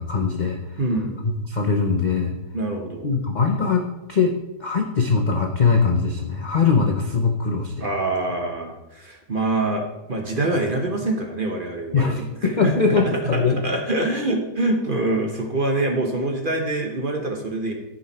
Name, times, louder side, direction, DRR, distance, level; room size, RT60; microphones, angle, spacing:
voice 1, 0.0-0.8 1.2-2.4 3.0-4.3 4.6-7.9 11.9-13.6, left 5 dB, 55° left, 1 dB, 0.5 m, -21 dB
voice 2, 0.8-1.3 2.5-3.2 7.8-12.1 12.4-17.7, right 2 dB, 35° right, 2 dB, 1.0 m, -25 dB
14.0 x 5.3 x 4.2 m, 0.98 s
omnidirectional pair, 1.9 m